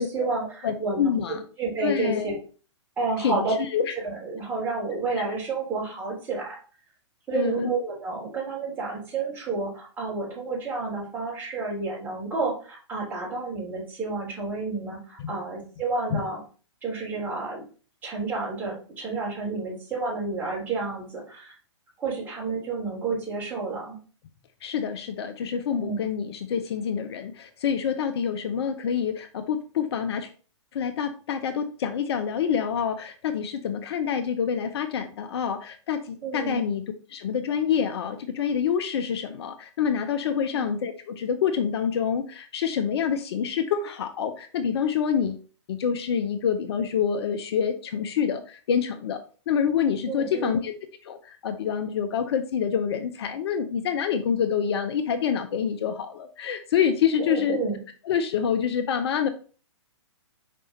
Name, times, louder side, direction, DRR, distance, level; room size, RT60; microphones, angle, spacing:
voice 1, 0.0-2.4 3.0-3.5 4.0-6.6 7.3-16.4 16.8-17.6 18.0-21.5 22.0-24.0 25.7-26.0 36.2-36.6 40.5-40.7 50.1-50.6 57.2-57.7, right 3 dB, 10° right, -5 dB, 3.6 m, -30 dB
voice 2, 0.6-1.4 1.8-2.3 3.2-3.4 3.7-3.9 7.3-7.7 15.2-15.3 16.1-16.2 24.6-30.3 30.7-36.8 37.1-45.4 45.7-49.2 49.5-50.7 51.0-57.6 58.0-59.3, left 7 dB, 55° left, 9 dB, 0.7 m, -27 dB
5.5 x 5.1 x 3.9 m, 0.38 s
hypercardioid pair, 135°, 16 cm